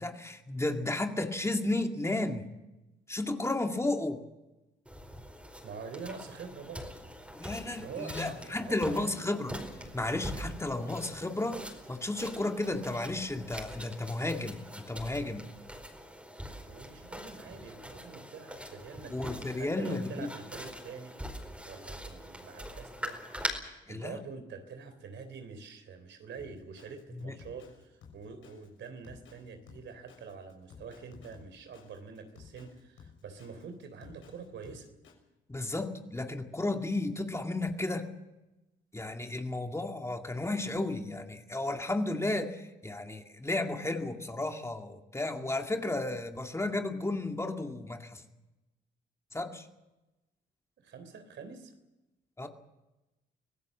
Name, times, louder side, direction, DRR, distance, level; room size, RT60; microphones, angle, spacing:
voice 1, 0.0-2.5 3.1-4.2 7.4-9.5 9.9-11.6 11.9-15.5 19.1-20.3 23.9-24.2 27.2-27.3 35.5-38.1 38.9-48.2 49.3-49.7 52.4-52.5, left 2 dB, 15° left, 4 dB, 2.2 m, -33 dB
sound 1, 4.9-23.5, equal, 5° right, 4.8 m, -43 dB
voice 2, 5.6-6.9 7.8-9.4 16.7-21.2 21.7-23.2 23.9-34.9 50.8-51.7, right 5 dB, 70° right, 9 dB, 3.5 m, -45 dB
Drum kit, 26.4-35.1, left 6 dB, 75° left, 6.4 m, -55 dB
25.0 x 17.0 x 7.5 m, 1.0 s
cardioid pair, 90°, 20 cm